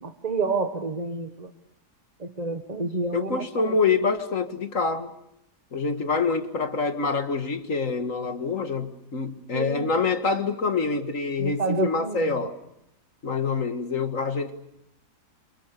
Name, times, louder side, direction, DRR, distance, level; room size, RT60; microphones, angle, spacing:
voice 1, 0.0-1.5 2.2-3.7 9.5-9.9 11.4-12.4, right 3 dB, 25° right, 1.5 m, -29 dB
voice 2, 3.1-5.1 5.7-12.6 13.2-14.6, left 4 dB, 55° left, 2.3 m, -26 dB
30.0 x 26.5 x 6.9 m
omnidirectional pair, 1.7 m